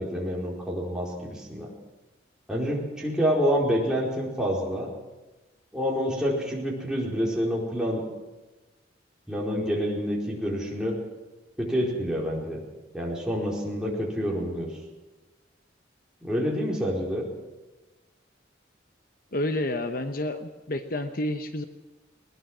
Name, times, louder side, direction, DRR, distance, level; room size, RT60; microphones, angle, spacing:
voice 1, 0.0-1.7 2.5-4.9 5.7-8.0 9.3-11.0 11.6-12.6 12.9-14.7 16.2-17.2, equal, 5° right, -3 dB, 4.6 m, -27 dB
voice 2, 19.3-21.6, left 1 dB, 50° left, 8 dB, 1.0 m, -29 dB
20.5 x 20.0 x 6.3 m, 1.1 s
head